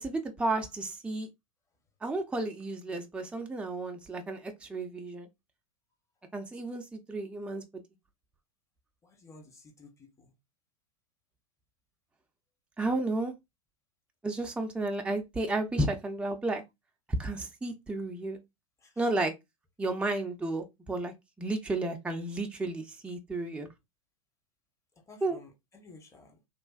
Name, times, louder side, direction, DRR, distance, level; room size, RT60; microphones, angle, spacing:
voice 1, 0.0-1.3 2.0-5.3 6.3-7.6 12.8-13.3 14.2-16.6 17.2-18.4 19.0-19.3 19.8-23.7 25.2-25.4, right 2 dB, 5° right, 0.5 m, -32 dB
voice 2, 9.0-10.3 18.8-18.9 25.1-26.4, left 3 dB, 15° left, 0.9 m, -53 dB
3.2 x 2.4 x 2.3 m
hypercardioid pair, 95°, 18 cm